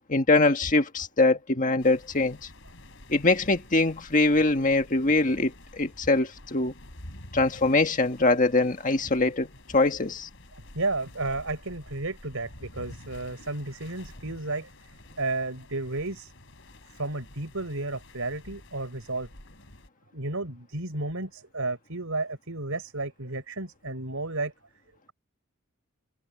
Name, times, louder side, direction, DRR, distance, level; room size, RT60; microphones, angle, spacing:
voice 1, 0.1-2.4 3.1-6.7 7.3-10.3, left 2 dB, 35° left, 1.7 m, -23 dB
sound 1, 1.8-19.9, left 1 dB, 60° left, 7.7 m, -49 dB
voice 2, 10.5-14.7 15.2-16.3 16.9-19.3 20.1-24.5, right 2 dB, 65° right, 6.1 m, -32 dB
head